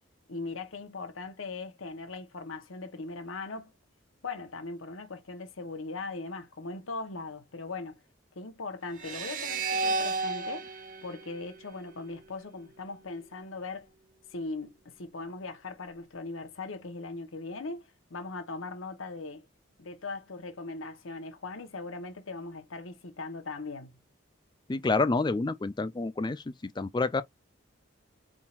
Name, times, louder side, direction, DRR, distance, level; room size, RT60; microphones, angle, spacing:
voice 1, 0.3-3.7 4.2-8.0 8.3-10.7 11.0-13.9 14.3-19.5 19.8-24.0, left 3 dB, 85° left, 1.0 m, -39 dB
sound 1, 9.0-12.3, right 3 dB, 40° right, 0.9 m, -33 dB
voice 2, 24.7-26.4 26.8-27.2, left 3 dB, 20° left, 0.4 m, -28 dB
4.3 x 3.7 x 2.4 m
head